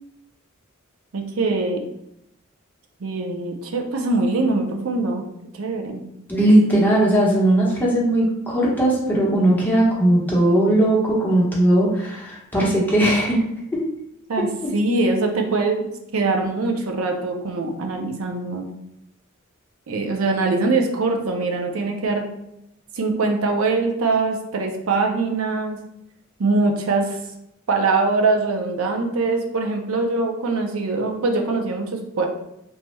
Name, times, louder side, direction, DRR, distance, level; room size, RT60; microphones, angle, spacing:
voice 1, 1.1-1.9 3.0-5.2 5.6-6.0 14.3-15.9 16.1-18.6 19.9-22.3 22.9-25.8 26.4-27.2 27.7-32.3, right 3 dB, 90° right, 3 dB, 0.5 m, -22 dB
voice 2, 6.3-13.4 13.7-13.8 14.4-14.5, right 1 dB, 10° left, -6 dB, 0.8 m, -18 dB
3.0 x 2.2 x 3.1 m, 0.82 s
head